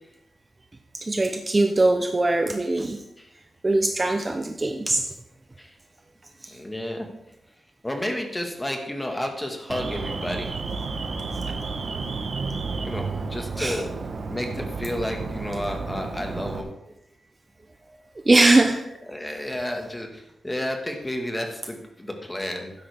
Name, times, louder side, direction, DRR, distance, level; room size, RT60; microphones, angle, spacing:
voice 1, 0.9-3.0 3.6-5.1 6.4-6.6 13.6-13.8 18.3-18.8, right 2 dB, 20° right, 5 dB, 0.6 m, -21 dB
voice 2, 6.5-7.1 7.8-10.5 12.8-13.8 14.3-16.7 19.1-22.7, left 1 dB, 10° left, 3 dB, 1.6 m, -31 dB
Alarm, 9.7-16.6, right 4 dB, 55° right, 1.1 m, -31 dB
12.5 x 9.8 x 3.5 m, 0.87 s
wide cardioid pair, 135°, 0 cm